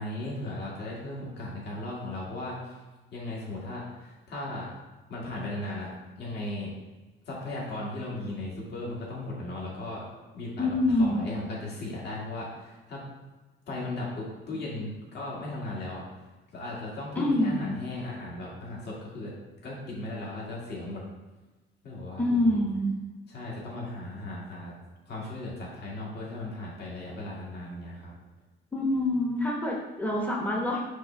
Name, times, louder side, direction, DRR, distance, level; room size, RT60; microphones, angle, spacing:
voice 1, 0.0-2.7 3.1-4.7 5.1-5.9 6.2-6.7 7.3-10.0 10.3-13.0 13.7-16.0 16.5-19.3 19.6-21.0 21.8-22.6 23.3-24.7 25.1-28.1, left 2 dB, 55° left, -4 dB, 2.2 m, -37 dB
voice 2, 10.6-11.3 17.2-17.7 22.2-23.0 28.7-30.8, left 1 dB, 10° left, -2 dB, 0.9 m, -26 dB
6.1 x 3.4 x 5.8 m, 1.2 s
cardioid pair, 145°, 21 cm